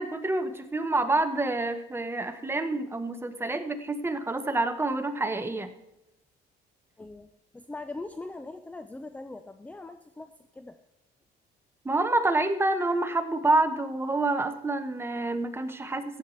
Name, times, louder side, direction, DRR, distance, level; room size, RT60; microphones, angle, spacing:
voice 1, 0.0-5.7 11.8-16.2, right 2 dB, 15° right, 9 dB, 0.9 m, -27 dB
voice 2, 7.0-10.8, left 2 dB, 10° left, 9 dB, 0.5 m, -41 dB
14.0 x 8.8 x 4.5 m, 0.87 s
cardioid pair, 110°, 17 cm